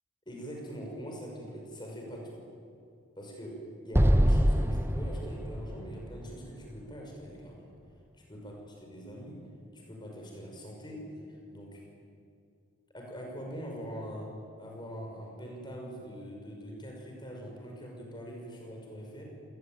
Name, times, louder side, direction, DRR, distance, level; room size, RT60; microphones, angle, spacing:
voice 1, 0.3-2.4 3.2-7.7 8.3-9.4 9.7-11.8 12.9-14.3 14.6-19.2, equal, 20° left, 0 dB, 5.9 m, -43 dB
Explosion, 3.9-7.2, equal, 10° right, 1.0 m, -26 dB
27.0 x 19.0 x 9.1 m, 2.5 s
head